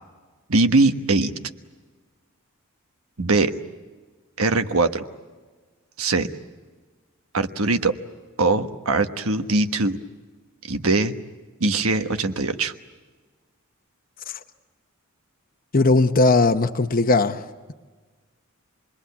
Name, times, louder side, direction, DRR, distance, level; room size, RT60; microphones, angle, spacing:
voice 1, 0.5-1.3 3.2-3.5 4.4-5.0 6.0-6.3 7.3-7.9 8.4-10.0 10.7-11.1 11.6-12.7, right 3 dB, 80° right, 1.3 m, -21 dB
voice 2, 15.7-17.7, left 3 dB, 45° left, 0.9 m, -19 dB
28.0 x 21.5 x 8.4 m
head